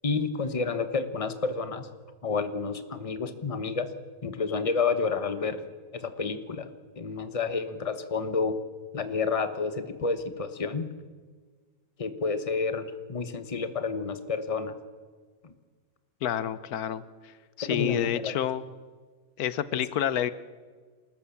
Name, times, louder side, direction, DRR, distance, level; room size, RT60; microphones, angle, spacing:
voice 1, 0.0-1.9 2.2-3.9 4.2-5.7 5.9-6.7 7.0-8.6 8.9-10.9 12.0-14.7 15.4-15.5 17.6-18.4 19.7-19.8, left 4 dB, 25° left, 10 dB, 1.1 m, -30 dB
voice 2, 16.2-17.0 17.6-18.6 19.4-20.3, left 10 dB, 90° left, 15 dB, 1.3 m, -28 dB
27.5 x 14.0 x 7.2 m, 1.5 s
omnidirectional pair, 1.5 m